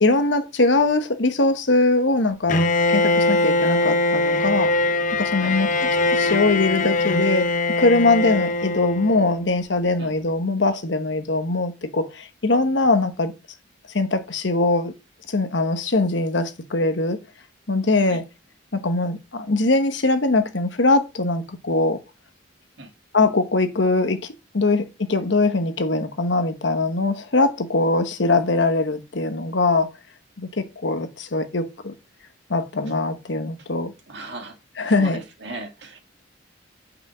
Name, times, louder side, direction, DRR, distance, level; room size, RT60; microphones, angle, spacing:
voice 1, 0.0-2.6 2.9-4.7 5.2-13.3 13.9-14.9 15.3-17.2 17.7-18.2 18.7-22.0 23.1-29.9 30.4-31.9 32.5-33.9 34.8-35.2, left 2 dB, 65° left, 1.1 m, -21 dB
Bowed string instrument, 2.5-9.4, left 2 dB, 40° left, 0.7 m, -21 dB
voice 2, 34.1-34.5 34.8-36.0, right 3 dB, 65° right, 1.9 m, -37 dB
6.1 x 5.0 x 6.1 m
head